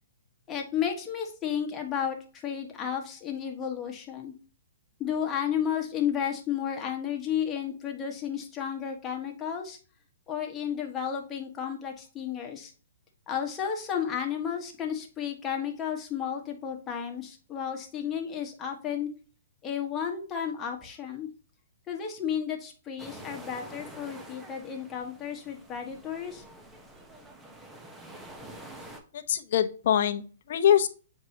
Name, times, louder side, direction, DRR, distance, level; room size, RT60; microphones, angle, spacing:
voice 1, 0.5-4.3 5.0-9.8 10.3-12.7 13.3-19.1 19.6-21.3 21.9-26.4, left 8 dB, 15° left, 1 dB, 1.4 m, -32 dB
sound 1, 23.0-29.0, right 1 dB, 10° right, 0.9 m, -47 dB
voice 2, 29.1-30.9, left 9 dB, 55° left, 9 dB, 0.9 m, -24 dB
7.6 x 4.7 x 2.9 m, 0.36 s
hypercardioid pair, 155°, 0 cm